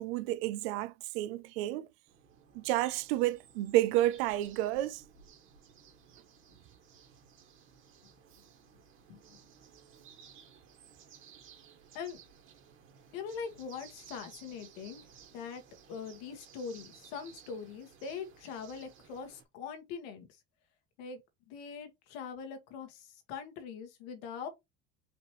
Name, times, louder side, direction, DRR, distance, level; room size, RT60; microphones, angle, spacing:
voice 1, 0.0-1.9 2.5-5.0, right 15 dB, 85° right, 0.5 m, -30 dB
sound 1, 2.1-19.4, right 7 dB, 45° right, 1.8 m, -57 dB
voice 2, 13.1-15.0 15.3-15.6 15.9-20.3 21.0-21.2 21.5-24.5, left 6 dB, 80° left, 1.6 m, -42 dB
5.0 x 3.1 x 3.0 m
cardioid pair, 135°, 29 cm